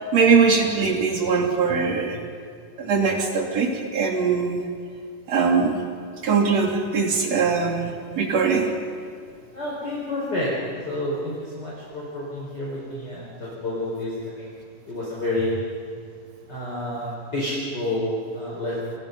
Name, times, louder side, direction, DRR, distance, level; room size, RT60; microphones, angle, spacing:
voice 1, 0.1-2.2 2.8-4.6 5.3-5.8 6.2-8.7, right 5 dB, 55° right, 2 dB, 4.0 m, -21 dB
voice 2, 9.5-10.5 10.8-14.5 14.9-15.6 16.5-19.0, left 1 dB, 30° left, -6 dB, 5.6 m, -29 dB
30.0 x 28.5 x 5.5 m, 2.3 s
omnidirectional pair, 3.7 m